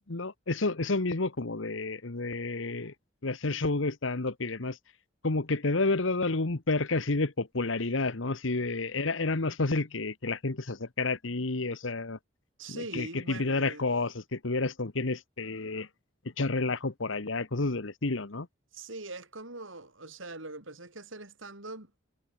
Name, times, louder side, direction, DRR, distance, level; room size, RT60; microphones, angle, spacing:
voice 1, 0.1-2.9 3.2-4.8 5.2-12.2 12.7-15.9 16.4-18.5, left 3 dB, 75° left, 1.3 m, -30 dB
voice 2, 12.6-13.9 18.7-22.0, right 2 dB, 80° right, 6.0 m, -42 dB
head